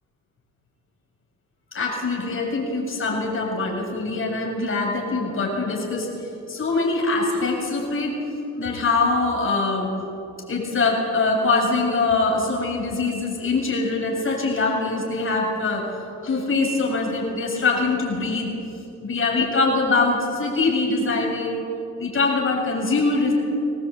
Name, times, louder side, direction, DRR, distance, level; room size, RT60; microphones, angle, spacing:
voice 1, 1.7-8.2 8.6-9.9 10.5-15.9 16.2-18.5 19.0-21.6 22.0-23.3, left 3 dB, 45° left, 0 dB, 7.5 m, -23 dB
22.5 x 18.5 x 8.7 m, 2.7 s
cardioid pair, 90°, 30 cm